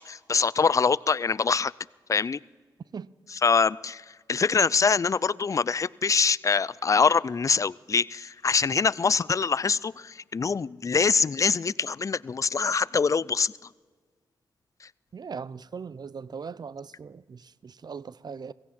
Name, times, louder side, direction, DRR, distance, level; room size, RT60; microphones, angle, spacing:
voice 1, 0.0-1.7 2.1-2.4 3.3-13.5, left 5 dB, 35° left, 0.4 m, -24 dB
voice 2, 15.1-18.5, right 6 dB, 50° right, 0.5 m, -39 dB
17.0 x 16.5 x 4.3 m
supercardioid pair, 45°, 9 cm